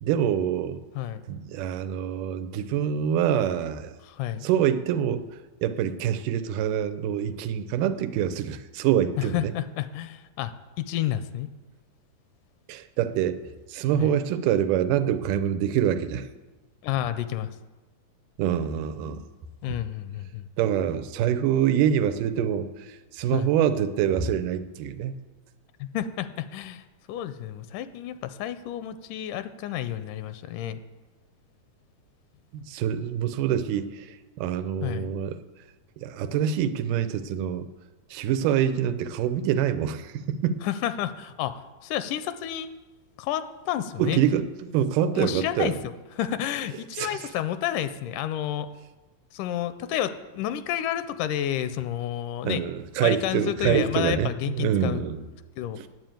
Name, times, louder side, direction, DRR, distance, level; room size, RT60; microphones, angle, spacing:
voice 1, 0.0-0.8 1.3-3.9 4.4-5.3 5.6-9.5 12.7-13.4 13.7-16.3 18.4-19.2 19.7-19.8 20.6-25.3 32.5-35.4 36.0-37.7 38.1-40.6 44.0-44.5 44.7-45.8 47.0-47.2 52.4-55.2 55.8-55.9, right 9 dB, 90° right, 11 dB, 2.3 m, -25 dB
voice 2, 4.0-4.5 9.2-11.5 14.0-14.2 16.8-17.6 19.6-20.5 23.3-23.5 25.8-26.8 27.1-30.8 34.8-35.1 40.6-42.7 43.2-44.2 45.1-48.7 49.3-52.6 53.0-55.0 55.6-55.8, left 11 dB, 85° left, 13 dB, 2.1 m, -30 dB
9.4 x 7.8 x 9.1 m, 1.2 s
omnidirectional pair, 3.6 m